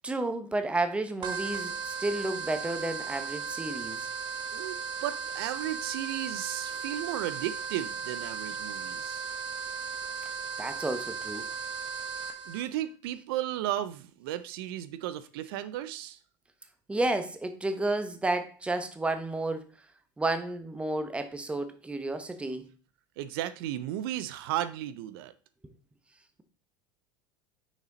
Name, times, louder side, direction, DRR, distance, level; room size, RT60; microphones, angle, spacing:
voice 1, 0.0-4.1 10.6-11.4 16.9-19.7 20.2-22.7, right 2 dB, 10° right, 0.8 m, -31 dB
sound 1, 1.2-12.6, right 5 dB, 40° right, 1.1 m, -36 dB
voice 2, 4.5-9.3 12.5-16.2 23.2-25.3, right 12 dB, 75° right, 0.5 m, -34 dB
6.0 x 4.2 x 3.9 m
supercardioid pair, 115°, 12 cm